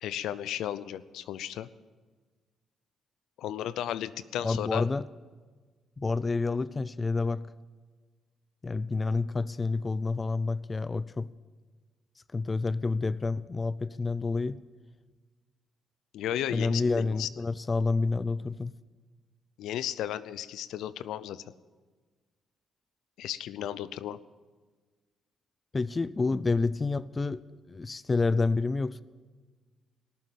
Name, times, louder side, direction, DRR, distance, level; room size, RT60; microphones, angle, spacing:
voice 1, 0.0-1.7 3.4-4.8 16.1-17.3 19.6-21.4 23.2-24.2, left 11 dB, 85° left, 0.5 m, -34 dB
voice 2, 4.4-5.1 6.0-7.5 8.6-11.3 12.3-14.6 16.5-18.7 25.7-29.0, left 3 dB, 25° left, 0.4 m, -29 dB
18.5 x 7.4 x 8.5 m
cardioid pair, 90°, 0 cm